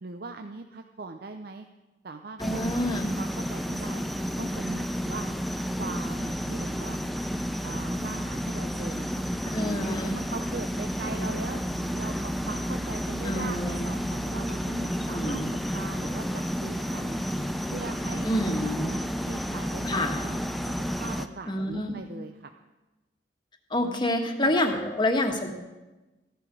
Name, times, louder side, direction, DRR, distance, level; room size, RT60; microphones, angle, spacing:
voice 1, 0.0-1.7 2.0-2.8 3.2-5.3 5.8-7.0 7.6-11.6 11.9-17.2 17.7-22.5 23.8-24.6, right 3 dB, 55° right, 6 dB, 0.6 m, -41 dB
voice 2, 2.4-3.1 9.5-10.2 13.2-13.9 15.1-15.5 18.2-18.9 19.8-20.2 21.5-22.0 23.7-25.5, left 1 dB, 25° left, 4 dB, 1.4 m, -28 dB
sound 1, 2.4-21.3, equal, ahead, 0.5 m, -31 dB
15.0 x 11.5 x 4.8 m, 1.1 s
head